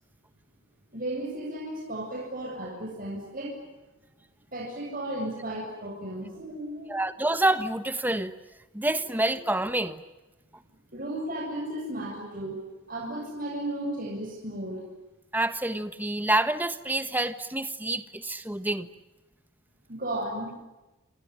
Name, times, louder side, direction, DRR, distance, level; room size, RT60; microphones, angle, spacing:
voice 1, 0.9-3.6 4.5-7.0 8.9-9.0 10.9-12.6 12.9-14.8 19.9-20.5, right 1 dB, 40° right, 7.8 m, -34 dB
voice 2, 6.9-8.3 8.7-10.0 15.3-18.9, right 1 dB, 10° right, 1.3 m, -27 dB
28.5 x 27.0 x 7.3 m
head